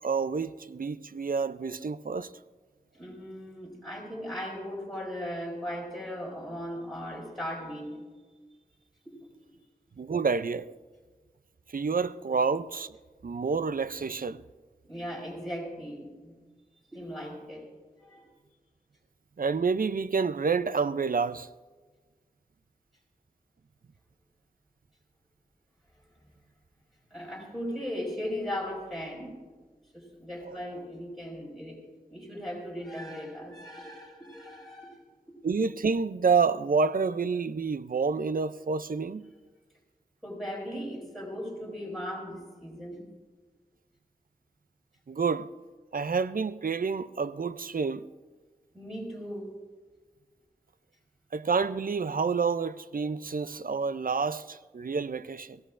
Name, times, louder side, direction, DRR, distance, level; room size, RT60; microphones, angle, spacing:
voice 1, 0.0-2.3 10.0-10.7 11.7-13.0 13.2-14.4 19.4-21.5 30.4-30.6 35.4-39.2 45.1-45.5 45.9-48.1 51.3-55.6, right 5 dB, 65° right, 0.4 m, -28 dB
voice 2, 2.9-8.0 14.9-16.4 16.9-17.7 18.0-18.3 27.1-29.4 29.9-31.8 32.1-35.0 40.2-43.0 48.7-49.5, equal, ahead, 5.6 m, -38 dB
22.5 x 17.0 x 2.5 m
wide cardioid pair, 55°, 15 cm